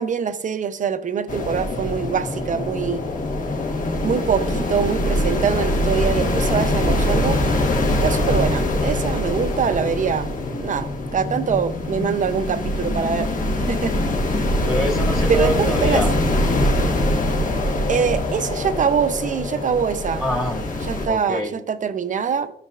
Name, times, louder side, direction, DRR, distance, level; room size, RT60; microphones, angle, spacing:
voice 1, 0.0-3.0 4.0-7.4 7.9-10.3 10.6-13.3 13.7-13.9 15.3-16.0 17.9-20.2 20.9-22.5, right 7 dB, 40° right, 10 dB, 0.6 m, -23 dB
sound 1, 1.3-21.1, left 1 dB, 45° left, 1.1 m, -23 dB
voice 2, 14.7-16.1 20.2-21.5, left 1 dB, 20° left, 1 dB, 2.0 m, -26 dB
13.0 x 5.4 x 2.4 m, 0.69 s
cardioid pair, 105°, 20 cm